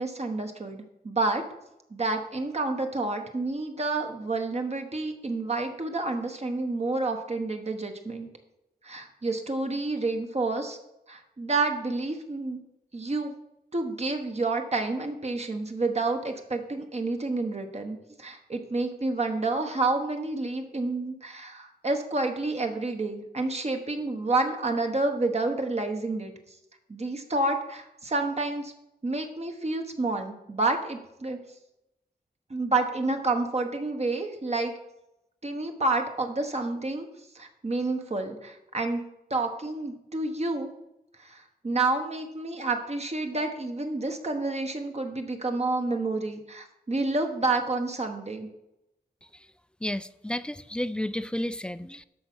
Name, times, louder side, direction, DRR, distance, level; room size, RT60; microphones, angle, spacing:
voice 1, 0.0-1.4 1.9-8.3 8.8-10.8 11.1-12.6 12.9-13.3 13.7-26.3 26.9-28.7 29.0-31.4 32.5-34.7 35.4-37.1 37.3-39.0 39.3-40.7 41.2-48.5, right 3 dB, 40° right, 1.2 m, -29 dB
voice 2, 49.8-52.0, left 1 dB, 5° left, 0.4 m, -32 dB
13.0 x 4.7 x 6.1 m
wide cardioid pair, 115°, 17 cm